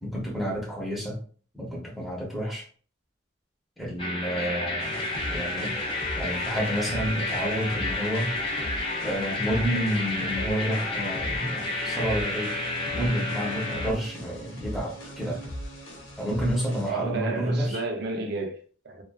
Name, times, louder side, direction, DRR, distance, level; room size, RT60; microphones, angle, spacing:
voice 1, 0.0-1.2 1.5-2.7 3.8-5.0 5.3-5.7 6.2-8.4 9.0-12.6 12.9-15.5 16.2-17.8, equal, ahead, 0.7 m, -30 dB
sound 1, 4.0-13.9, left 2 dB, 25° left, 0.3 m, -31 dB
sound 2, 4.8-16.9, equal, 80° left, 0.7 m, -39 dB
voice 2, 16.8-19.0, right 3 dB, 55° right, 0.5 m, -32 dB
2.4 x 2.3 x 2.3 m
head